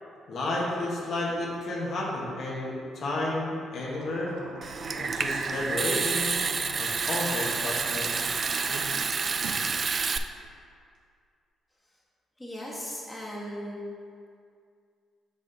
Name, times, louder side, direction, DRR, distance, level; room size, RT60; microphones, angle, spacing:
voice 1, 0.3-4.3 5.0-6.4 6.8-8.1, left 2 dB, 65° left, -4 dB, 1.4 m, -31 dB
sound 1, 3.8-8.8 9.2-9.7, right 2 dB, 85° right, 0.7 m, -43 dB
Water tap faucet / Sink (filling or washing) / Trickle dribble, 4.6-10.2, right 5 dB, 40° right, 0.3 m, -29 dB
voice 2, 12.4-13.8, equal, 10° left, -5 dB, 1.5 m, -37 dB
7.2 x 4.2 x 4.1 m, 2.2 s
cardioid pair, 90°, 0 cm